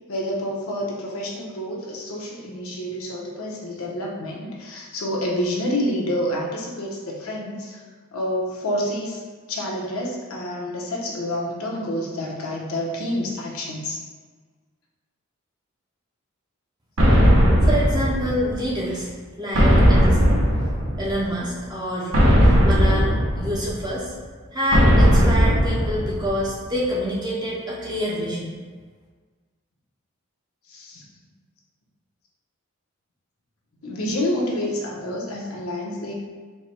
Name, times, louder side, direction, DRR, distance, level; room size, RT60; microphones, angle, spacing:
voice 1, 0.1-7.8 8.1-9.2 9.5-14.0 30.7-31.0 33.8-36.1, left 1 dB, 90° left, -3 dB, 0.9 m, -28 dB
sound 1, 17.0-18.7 19.5-21.3 22.1-23.9 24.7-26.5, equal, 65° right, 1.0 m, -17 dB
voice 2, 17.6-19.1 19.4-20.2 21.0-24.1 24.5-28.5, equal, 20° right, -5 dB, 0.6 m, -27 dB
4.5 x 2.2 x 4.3 m, 1.5 s
head